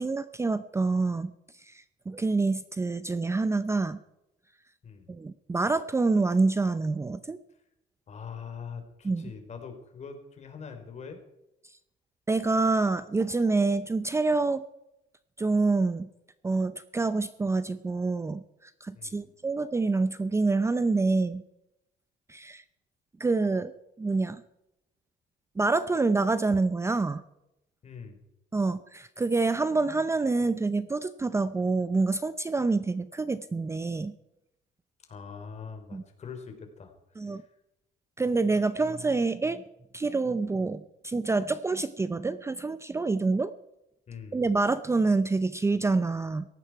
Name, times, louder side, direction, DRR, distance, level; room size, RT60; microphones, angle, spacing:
voice 1, 0.0-1.3 1.6-4.0 5.1-7.4 9.0-9.3 11.6-11.8 12.3-14.6 15.4-16.1 16.4-21.4 22.3-22.6 23.2-23.7 24.0-24.4 25.6-27.2 28.5-34.1 35.9-36.0 37.2-37.4 38.2-39.6 39.9-43.5 44.3-46.4, right 3 dB, 15° right, 13 dB, 0.6 m, -27 dB
voice 2, 8.1-11.2 18.9-19.2 27.8-28.2 35.1-37.5 44.1-44.4, left 6 dB, 40° left, 6 dB, 3.7 m, -43 dB
18.0 x 15.5 x 4.7 m, 0.88 s
cardioid pair, 110°, 17 cm